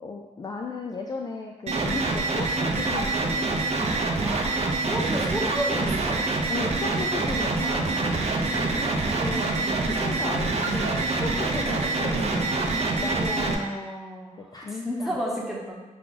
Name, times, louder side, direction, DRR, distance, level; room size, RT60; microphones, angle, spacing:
voice 1, 0.0-3.5 6.5-8.3 9.2-13.6 14.4-15.2, left 4 dB, 30° left, 0 dB, 0.3 m, -36 dB
sound 1, 1.7-13.5, right 3 dB, 50° right, 0.6 m, -26 dB
voice 2, 4.2-4.5 4.8-6.2 8.4-9.9 13.1-14.5 14.7-15.8, equal, ahead, -4 dB, 1.0 m, -33 dB
5.8 x 2.4 x 3.8 m, 1.2 s
cardioid pair, 100°, 14 cm